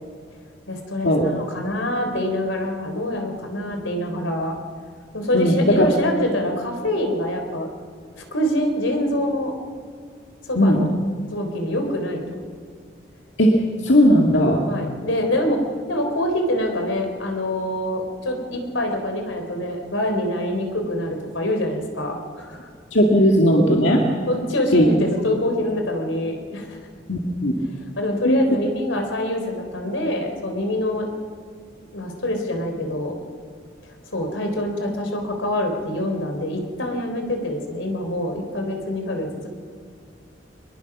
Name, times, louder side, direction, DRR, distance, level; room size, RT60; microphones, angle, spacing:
voice 1, 0.7-4.6 5.1-7.7 8.1-9.6 10.4-10.9 11.3-12.4 14.7-15.6 15.9-22.6 24.3-26.8 28.0-31.1 31.9-33.2 34.1-39.5, left 1 dB, 90° left, 4 dB, 3.7 m, -25 dB
voice 2, 5.3-5.9 10.6-10.8 13.4-13.6 13.8-14.6 22.9-24.0 24.7-24.8 27.1-27.5 28.2-28.4, equal, 65° left, 0 dB, 2.2 m, -16 dB
23.5 x 21.5 x 6.1 m, 2.2 s
head